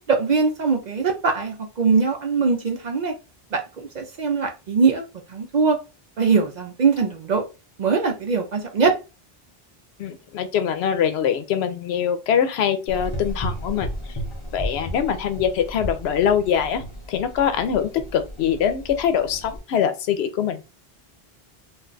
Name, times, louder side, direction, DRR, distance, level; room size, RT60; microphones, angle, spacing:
voice 1, 0.1-3.1 3.5-5.0 5.3-5.8 6.2-7.4 7.8-8.9, right 5 dB, 55° right, 0.6 m, -21 dB
voice 2, 10.0-14.2 14.5-16.8 17.1-20.7, left 8 dB, 85° left, 0.8 m, -23 dB
Gurgling / Engine, 12.9-19.6, equal, 35° left, 0.7 m, -34 dB
2.4 x 2.2 x 3.8 m
omnidirectional pair, 1.0 m